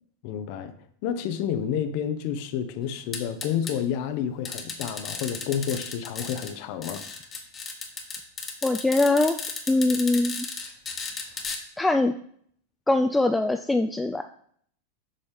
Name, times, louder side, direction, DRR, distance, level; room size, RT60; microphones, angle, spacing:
voice 1, 0.2-0.7 1.0-7.0, left 8 dB, 50° left, 10 dB, 0.6 m, -30 dB
sound 1, 3.1-3.7 4.4-6.5 6.8-11.6, left 4 dB, 25° left, 1.1 m, -34 dB
voice 2, 8.6-9.3 9.7-10.5 11.8-12.1 12.9-14.2, left 2 dB, 10° left, 6 dB, 0.3 m, -22 dB
7.5 x 5.3 x 3.3 m, 0.63 s
figure-of-eight pair, 90°, 0 cm